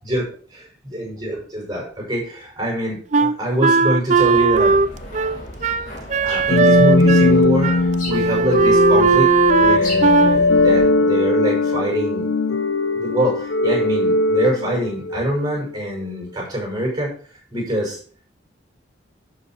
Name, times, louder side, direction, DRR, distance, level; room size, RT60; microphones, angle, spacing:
voice 1, 0.0-0.6 0.9-4.8 6.2-12.3 12.9-17.1 17.5-18.0, equal, 20° right, -2 dB, 6.3 m, -25 dB
Wind instrument woodwind instrument, 3.1-7.4 7.6-7.8 8.1-10.4, right 4 dB, 40° right, 0.4 m, -17 dB
sound 1, 4.1-10.9, left 1 dB, 45° left, 4.1 m, -36 dB
sound 2, 6.5-15.5, left 2 dB, 85° left, 0.7 m, -19 dB
12.0 x 6.8 x 4.6 m, 0.43 s
head